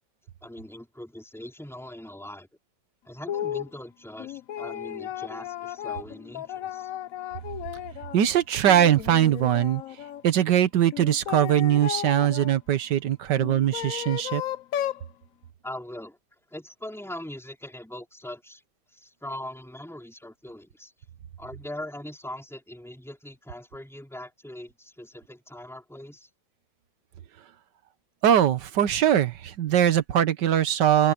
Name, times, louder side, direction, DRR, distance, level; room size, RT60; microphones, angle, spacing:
voice 1, 0.4-2.5 3.1-6.9 15.6-16.2 16.5-18.6 18.9-20.9 21.4-26.3, left 1 dB, ahead, 4.2 m, -41 dB
sound 1, 3.3-3.7 4.2-8.2 8.6-10.2 10.9-12.5 13.4-15.1, left 11 dB, 65° left, 0.9 m, -34 dB
voice 2, 8.1-9.8 10.2-14.4 28.2-31.1, right 10 dB, 70° right, 1.7 m, -21 dB
open air
omnidirectional pair, 1.9 m